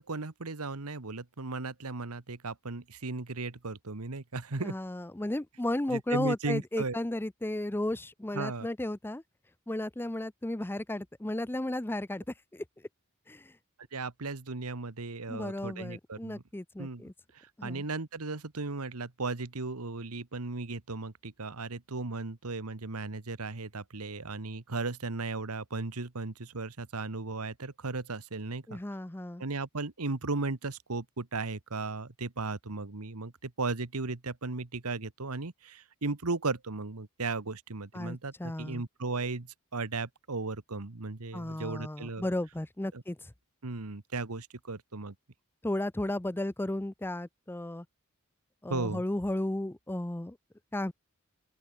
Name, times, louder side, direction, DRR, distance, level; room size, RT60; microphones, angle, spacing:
voice 1, 0.0-4.7 5.9-7.0 8.3-8.7 13.9-16.4 16.8-28.8 29.4-42.3 42.9-43.0 43.6-45.1 48.7-49.0, right 3 dB, 85° right, 1.4 m, -36 dB
voice 2, 4.6-9.2 9.7-12.2 12.5-12.6 13.3-13.5 15.3-17.1 17.6-17.8 28.7-29.4 37.9-38.8 41.3-43.3 45.6-47.9 48.6-50.4 50.7-50.9, left 1 dB, 10° left, 0.6 m, -34 dB
open air
head